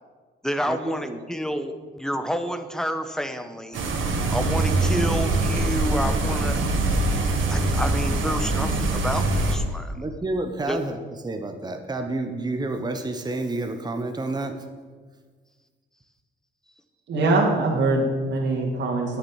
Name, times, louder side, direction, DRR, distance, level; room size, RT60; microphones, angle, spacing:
voice 1, 0.4-3.8 4.3-6.6 7.5-10.1 10.6-10.8, equal, 5° left, 8 dB, 1.1 m, -29 dB
sound 1, 3.7-9.6, right 2 dB, 80° right, 1.9 m, -23 dB
voice 2, 10.0-11.0 11.2-14.5, right 2 dB, 20° right, 5 dB, 1.1 m, -29 dB
voice 3, 17.1-19.2, right 2 dB, 60° right, -1 dB, 2.3 m, -22 dB
9.7 x 7.2 x 7.4 m, 1.5 s
cardioid pair, 90°, 20 cm